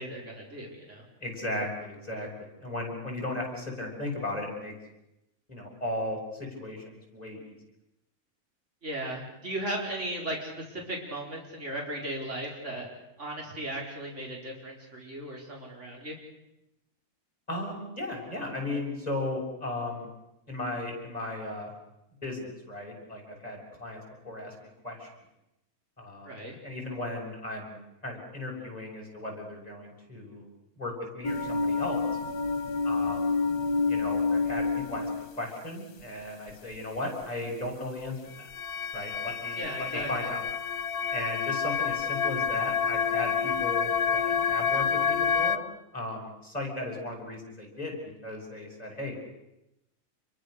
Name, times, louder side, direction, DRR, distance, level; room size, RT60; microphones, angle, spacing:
voice 1, 0.0-1.0 8.8-12.9 13.2-16.2 26.2-26.6 39.6-40.3, right 1 dB, 50° right, -2 dB, 5.1 m, -36 dB
voice 2, 1.2-2.3 2.6-4.7 5.5-7.6 17.5-20.1 20.5-21.7 22.2-25.1 26.0-30.4 30.8-32.0 32.8-33.3 33.9-38.5 38.9-40.4 41.1-45.6 45.9-49.2, left 1 dB, 25° left, -1 dB, 7.1 m, -36 dB
sound 1, 31.2-35.2 38.5-45.6, left 5 dB, 85° left, 1.7 m, -28 dB
29.0 x 23.0 x 6.6 m, 0.90 s
omnidirectional pair, 1.6 m